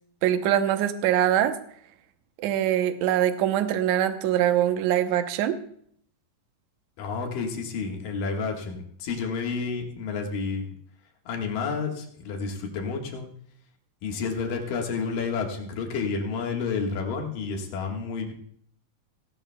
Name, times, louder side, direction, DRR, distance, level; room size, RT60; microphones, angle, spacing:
voice 1, 0.2-1.6 2.4-5.6, right 11 dB, 70° right, 9 dB, 2.0 m, -23 dB
voice 2, 7.0-10.7 11.3-13.3 14.0-18.3, left 5 dB, 85° left, 1 dB, 3.2 m, -30 dB
17.5 x 16.5 x 2.2 m, 0.62 s
omnidirectional pair, 3.8 m